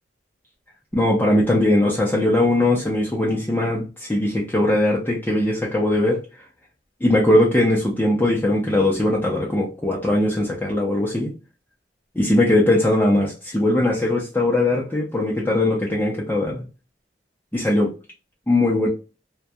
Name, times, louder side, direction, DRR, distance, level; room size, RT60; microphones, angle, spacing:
voice 1, 0.9-6.4 7.0-11.3 12.1-16.7 17.5-17.9 18.5-18.9, left 1 dB, 10° left, 0.5 m, -20 dB
2.2 x 2.2 x 2.6 m
head